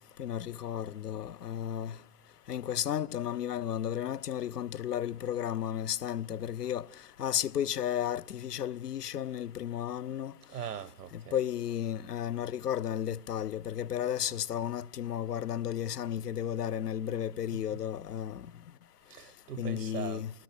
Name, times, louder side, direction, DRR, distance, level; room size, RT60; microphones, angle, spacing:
voice 1, 0.2-2.0 2.5-6.9 7.2-10.3 11.1-18.5 19.6-20.3, left 10 dB, 75° left, 0.8 m, -33 dB
voice 2, 10.5-11.4 17.5-17.8 19.2-20.2, right 9 dB, 80° right, 1.2 m, -41 dB
29.0 x 20.0 x 8.3 m
hypercardioid pair, 140°, 47 cm